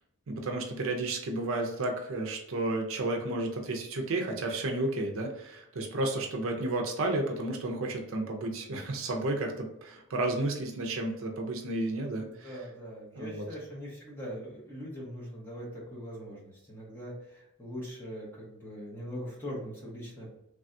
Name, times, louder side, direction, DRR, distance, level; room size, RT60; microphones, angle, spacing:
voice 1, 0.3-12.5 13.1-13.5, right 2 dB, 70° right, 2 dB, 0.5 m, -32 dB
voice 2, 12.4-20.3, equal, 10° left, -5 dB, 1.0 m, -41 dB
3.3 x 2.3 x 2.6 m, 0.85 s
head